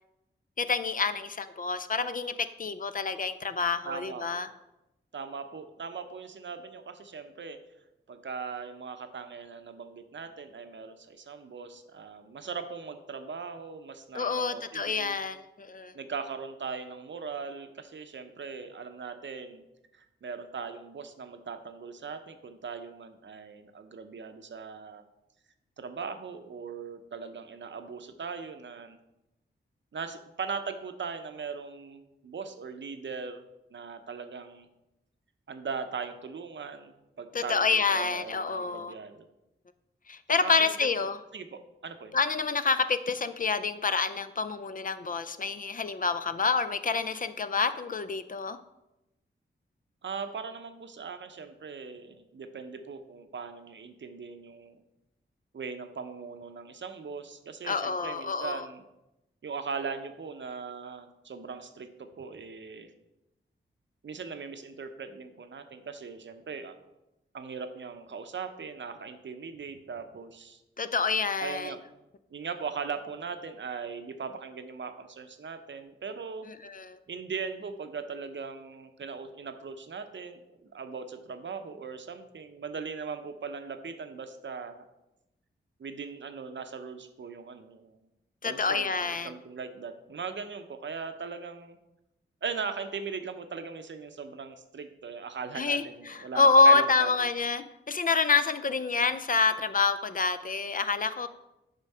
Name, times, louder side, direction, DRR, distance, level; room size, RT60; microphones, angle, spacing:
voice 1, 0.6-4.5 14.1-16.0 37.3-38.9 40.1-41.2 42.1-48.6 57.6-58.7 70.8-71.7 76.5-77.0 88.4-89.3 95.6-101.3, left 4 dB, 40° left, 11 dB, 0.4 m, -27 dB
voice 2, 3.8-4.2 5.1-7.6 8.1-15.1 15.9-19.6 19.9-25.0 25.8-29.0 29.9-33.4 33.7-34.7 35.5-39.3 40.4-40.7 41.0-41.1 41.3-42.2 50.0-54.8 55.5-58.8 59.4-62.9 64.0-66.7 67.3-70.6 71.4-71.8 72.3-76.5 77.1-84.8 85.8-88.0 88.4-91.8 92.4-97.3, right 5 dB, 60° right, 8 dB, 0.7 m, -39 dB
7.0 x 3.8 x 5.5 m, 0.94 s
cardioid pair, 60°, 21 cm